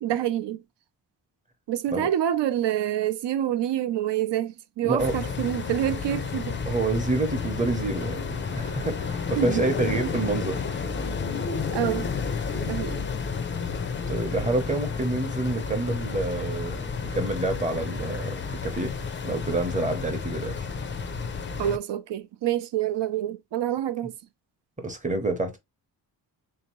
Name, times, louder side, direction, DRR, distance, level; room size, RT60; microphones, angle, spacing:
voice 1, 0.0-0.6 1.7-6.6 9.4-10.1 11.7-12.1 12.6-13.1 21.6-24.1, right 11 dB, 85° right, 0.6 m, -27 dB
voice 2, 4.8-5.1 6.7-10.6 14.1-18.9 19.2-20.6 24.8-25.6, right 2 dB, 20° right, 0.6 m, -28 dB
sound 1, 5.0-21.8, left 5 dB, 30° left, 0.4 m, -31 dB
3.7 x 2.7 x 3.0 m
wide cardioid pair, 180°, 41 cm